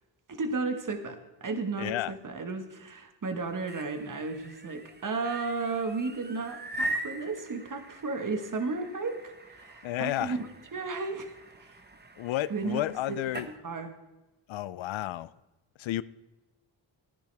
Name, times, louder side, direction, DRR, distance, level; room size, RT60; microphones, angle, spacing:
voice 1, 0.3-9.2 9.5-10.4 10.7-11.7 12.5-12.8 13.1-13.9, right 3 dB, 40° right, 1.6 m, -34 dB
voice 2, 1.8-2.1 9.8-10.4 12.2-13.5 14.5-15.3 15.8-16.0, left 14 dB, 75° left, 0.5 m, -31 dB
sound 1, 3.4-13.6, right 1 dB, 20° right, 1.1 m, -41 dB
14.5 x 10.5 x 3.4 m
cardioid pair, 60°, 47 cm